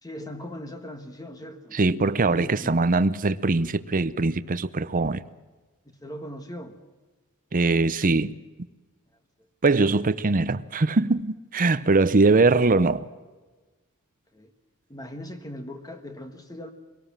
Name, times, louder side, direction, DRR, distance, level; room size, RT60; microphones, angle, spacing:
voice 1, 0.0-1.8 2.2-2.8 5.9-6.8 11.7-11.8 14.3-14.5 14.9-16.7, left 1 dB, 15° left, 1.5 m, -39 dB
voice 2, 1.7-5.2 7.5-8.3 9.6-13.0, right 3 dB, 40° right, 0.7 m, -22 dB
23.0 x 18.0 x 7.4 m
head